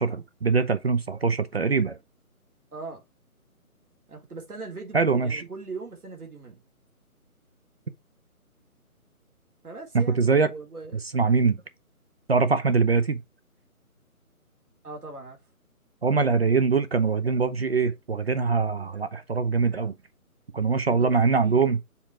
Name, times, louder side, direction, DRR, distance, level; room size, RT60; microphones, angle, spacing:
voice 1, 0.0-2.0 4.9-5.5 9.9-10.5 11.1-11.6 12.3-13.2 16.0-19.9 20.5-21.8, right 5 dB, 45° right, 0.7 m, -23 dB
voice 2, 2.7-3.0 4.1-6.6 9.6-11.0 14.8-15.4 20.9-21.7, right 3 dB, 80° right, 3.7 m, -40 dB
7.1 x 3.7 x 4.4 m
figure-of-eight pair, 155°, 44 cm